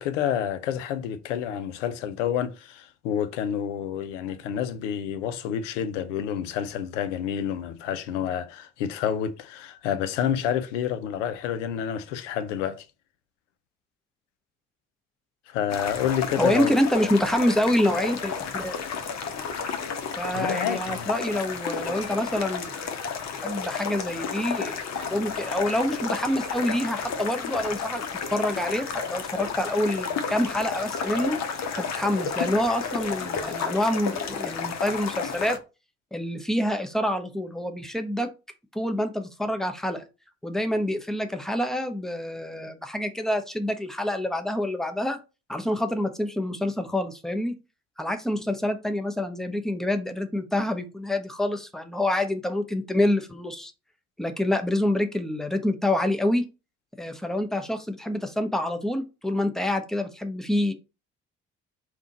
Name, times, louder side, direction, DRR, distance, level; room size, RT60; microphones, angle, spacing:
voice 1, 0.0-12.9 15.5-16.8 20.3-21.1, left 9 dB, 75° left, 0.6 m, -29 dB
sound 1, 15.7-35.6, left 6 dB, 45° left, 0.9 m, -32 dB
voice 2, 16.4-18.8 20.1-23.0 23.3-28.0 28.3-31.4 31.7-35.6 36.1-38.3 38.7-40.0 40.4-45.2 45.5-47.5 48.0-53.7 54.2-56.5 57.0-60.7, left 1 dB, ahead, 0.8 m, -27 dB
3.6 x 2.4 x 3.9 m
figure-of-eight pair, 50°, 36 cm